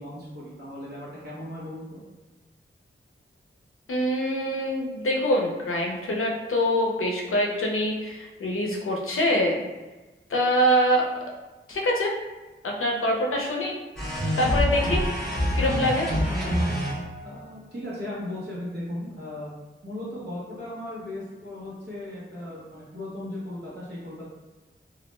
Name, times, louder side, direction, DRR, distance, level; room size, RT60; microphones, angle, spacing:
voice 1, 0.0-2.0 17.2-19.5 19.8-24.2, left 1 dB, 55° right, -8 dB, 0.9 m, -37 dB
voice 2, 3.9-9.6 10.3-11.0 11.7-12.1 12.6-13.7 14.4-15.0 15.5-16.1, equal, 80° left, 0 dB, 0.5 m, -24 dB
sound 1, 14.0-17.3, equal, ahead, 0.9 m, -26 dB
2.3 x 2.1 x 3.1 m, 1.2 s
wide cardioid pair, 65°, 21 cm